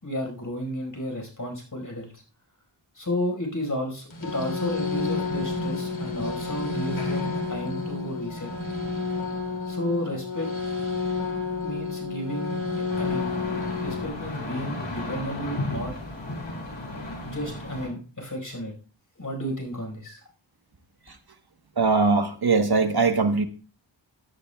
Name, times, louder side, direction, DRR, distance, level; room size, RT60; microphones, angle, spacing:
voice 1, 0.0-2.2 2.9-8.5 9.7-10.5 11.6-13.3 13.8-15.9 17.2-18.7 19.2-20.2, equal, 45° left, 2 dB, 4.8 m, -32 dB
sound 1, 4.1-14.1, left 4 dB, 90° left, 2.5 m, -30 dB
sound 2, 12.9-17.9, left 2 dB, 70° left, 4.4 m, -34 dB
voice 2, 21.8-23.5, right 4 dB, 55° right, 7 dB, 1.2 m, -21 dB
16.5 x 11.0 x 2.3 m, 0.38 s
wide cardioid pair, 55°, 46 cm